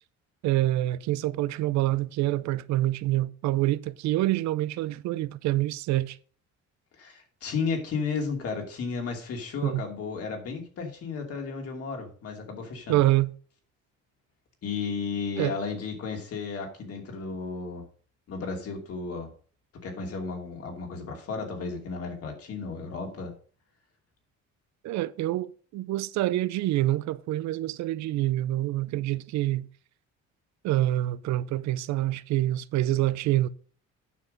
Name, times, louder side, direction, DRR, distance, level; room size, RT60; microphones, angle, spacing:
voice 1, 0.4-6.2 9.6-9.9 12.9-13.3 15.4-15.5 24.8-29.7 30.6-33.5, right 15 dB, 70° right, 0.6 m, -26 dB
voice 2, 7.0-13.0 14.6-17.8 18.3-19.3 19.8-23.3, left 5 dB, 55° left, 2.7 m, -33 dB
9.4 x 6.0 x 5.2 m
cardioid pair, 130°, 29 cm